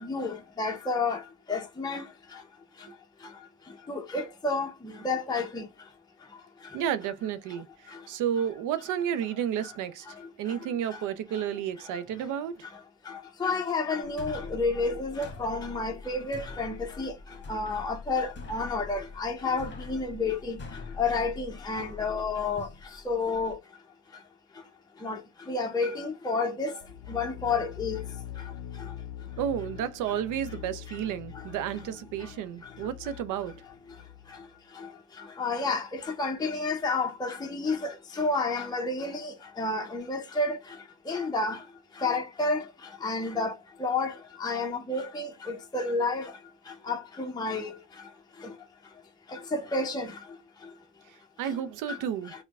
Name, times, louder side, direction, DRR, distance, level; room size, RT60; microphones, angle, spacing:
voice 1, 0.0-1.2 1.5-2.0 3.9-4.7 5.0-5.6 13.4-17.1 17.5-20.6 21.0-22.7 23.1-23.6 25.0-25.2 25.5-26.7 27.1-28.0 35.4-37.9 38.2-40.6 41.1-41.6 42.0-42.6 43.0-43.5 43.8-44.1 44.4-46.3 46.9-47.7 49.5-50.1, left 3 dB, 15° left, 0.6 m, -30 dB
voice 2, 6.7-12.6 29.4-33.6 51.1-52.3, right 9 dB, 85° right, 0.5 m, -32 dB
sound 1, 14.0-23.5, left 4 dB, 35° left, 0.9 m, -44 dB
sound 2, 26.8-34.5, left 10 dB, 65° left, 0.5 m, -43 dB
4.5 x 2.2 x 2.3 m
cardioid pair, 90°, 30 cm